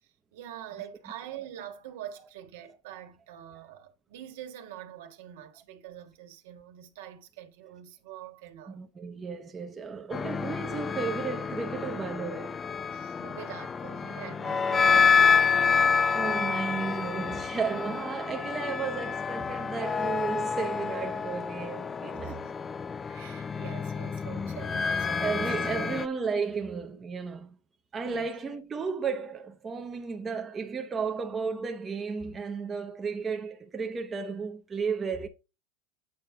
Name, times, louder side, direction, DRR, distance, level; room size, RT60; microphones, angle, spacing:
voice 1, 0.3-8.8 12.9-15.5 22.0-22.6 23.1-26.0 28.0-28.3, right 11 dB, 80° right, 1.5 m, -45 dB
voice 2, 8.7-12.6 16.1-22.4 25.2-27.6 27.9-35.3, right 5 dB, 20° right, 0.8 m, -33 dB
sound 1, 10.1-26.1, left 6 dB, 20° left, 0.3 m, -28 dB
8.6 x 3.7 x 4.7 m
supercardioid pair, 135°, 0 cm